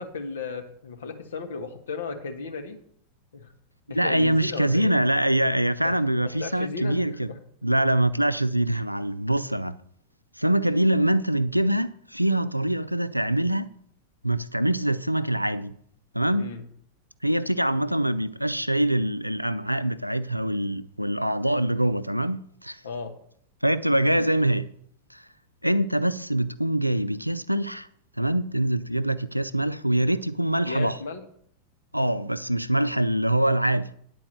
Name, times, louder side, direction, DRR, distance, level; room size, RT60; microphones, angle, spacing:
voice 1, 0.0-2.8 3.3-3.5 3.9-4.9 5.8-6.0 6.2-7.4 7.8-7.9 16.4-16.6 22.8-23.2 30.7-31.2, left 4 dB, 65° left, 1.3 m, -35 dB
voice 2, 3.9-7.3 7.6-9.8 10.4-13.7 14.2-15.8 16.1-16.5 17.2-22.8 23.6-24.7 25.1-25.2 25.6-27.9 28.2-31.0 31.9-33.9, right 1 dB, 90° right, 0.4 m, -24 dB
9.8 x 4.6 x 7.6 m
figure-of-eight pair, 90°, 0 cm